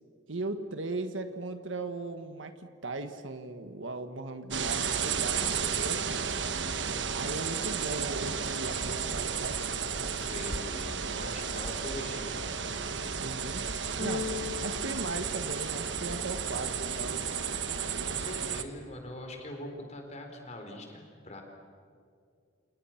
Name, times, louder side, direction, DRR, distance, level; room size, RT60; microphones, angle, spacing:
voice 1, 0.3-6.3 7.1-9.6 13.2-13.7 14.0-14.3 14.6-17.2, right 2 dB, 90° right, 8 dB, 1.5 m, -38 dB
sound 1, 4.5-18.6, right 6 dB, 65° right, 1.3 m, -33 dB
voice 2, 10.1-12.5 14.0-14.3 18.1-21.4, left 1 dB, 35° left, 3 dB, 4.1 m, -43 dB
Keyboard (musical), 14.0-16.1, left 5 dB, 70° left, 1.7 m, -39 dB
29.0 x 28.5 x 5.9 m, 2.3 s
head